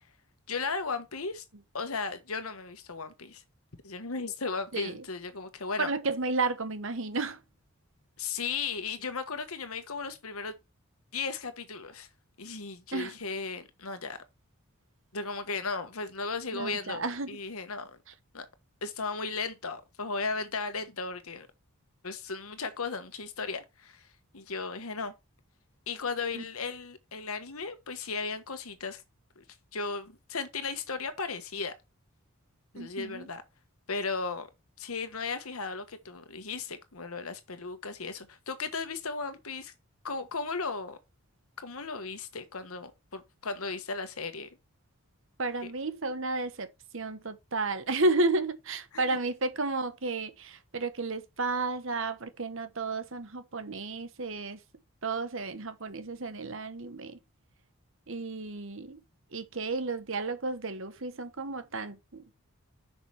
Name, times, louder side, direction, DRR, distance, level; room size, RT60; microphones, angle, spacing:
voice 1, 0.5-1.4 1.7-3.4 3.8-5.9 8.2-10.5 11.1-12.1 12.4-14.2 15.1-18.0 18.3-18.5 18.8-21.5 22.0-24.1 24.3-25.1 25.9-29.0 29.4-29.5 29.7-31.7 32.7-33.4 33.9-34.5 34.8-39.7 40.0-41.0 41.6-44.5 48.9-49.2, left 4 dB, 80° left, 1.4 m, -36 dB
voice 2, 4.7-5.0 5.8-7.4 12.9-13.2 16.5-17.4 26.3-26.4 32.7-33.3 45.4-54.6 55.0-57.2 58.1-59.0 59.3-62.3, right 3 dB, 60° right, 1.2 m, -32 dB
7.5 x 6.1 x 3.4 m
head